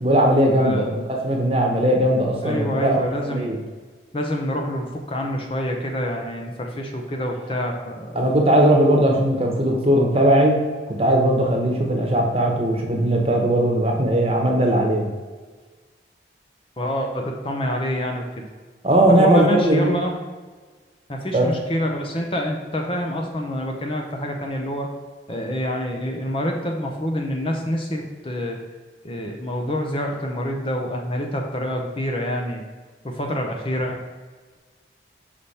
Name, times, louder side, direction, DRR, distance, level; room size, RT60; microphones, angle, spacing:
voice 1, 0.0-3.6 8.1-10.6 10.9-15.1 18.8-19.9 21.3-21.5, right 1 dB, 30° right, 1 dB, 1.0 m, -19 dB
voice 2, 0.6-1.0 2.4-3.5 4.1-8.2 16.8-18.4 19.1-20.1 21.1-24.9 25.3-28.6 29.0-32.6 33.0-34.0, equal, 30° left, 2 dB, 0.7 m, -27 dB
5.5 x 5.0 x 4.2 m, 1.4 s
head